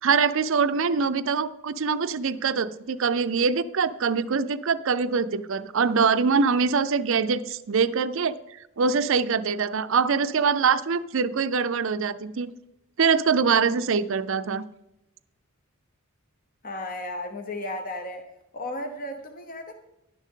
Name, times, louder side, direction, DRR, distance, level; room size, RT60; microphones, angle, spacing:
voice 1, 0.0-8.4 8.8-12.5 13.0-14.6, right 5 dB, 60° right, 13 dB, 0.5 m, -23 dB
voice 2, 16.6-18.3 18.5-19.7, left 1 dB, 40° left, 5 dB, 0.9 m, -34 dB
11.5 x 9.9 x 3.7 m, 0.89 s
head